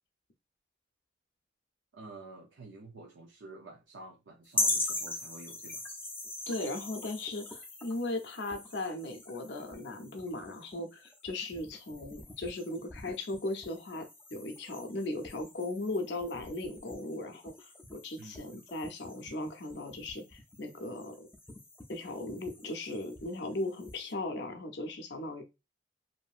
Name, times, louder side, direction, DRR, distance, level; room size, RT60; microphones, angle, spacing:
voice 1, 1.9-5.8 18.2-18.6, right 2 dB, 80° right, 0.5 m, -49 dB
sound 1, 4.5-24.1, left 2 dB, 10° left, 0.4 m, -41 dB
voice 2, 6.5-21.3 21.9-25.4, left 2 dB, 65° left, 0.6 m, -37 dB
2.6 x 2.6 x 2.4 m
head